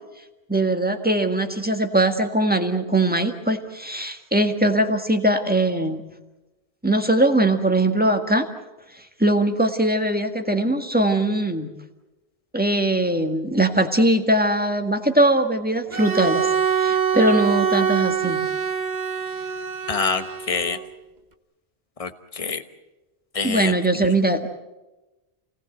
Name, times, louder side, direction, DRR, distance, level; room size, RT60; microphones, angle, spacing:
voice 1, 0.5-6.0 6.8-8.5 9.2-11.7 12.5-18.4 23.4-24.5, right 1 dB, 10° right, 5 dB, 1.7 m, -21 dB
Bowed string instrument, 15.9-20.9, right 7 dB, 45° right, 1.3 m, -24 dB
voice 2, 19.9-20.8 22.0-22.6 23.3-24.1, left 5 dB, 35° left, 9 dB, 1.3 m, -27 dB
28.5 x 18.5 x 8.0 m, 1.1 s
omnidirectional pair, 1.1 m